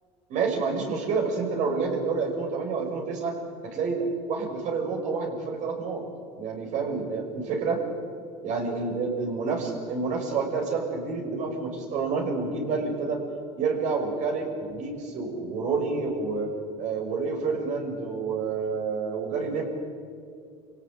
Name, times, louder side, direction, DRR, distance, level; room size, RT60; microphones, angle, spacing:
voice 1, 0.3-3.3 3.6-6.0 6.4-7.8 8.4-13.2 13.6-16.5 16.8-19.6, right 4 dB, 60° right, 3 dB, 6.0 m, -28 dB
27.5 x 17.0 x 8.9 m, 2.3 s
supercardioid pair, 110°, 14 cm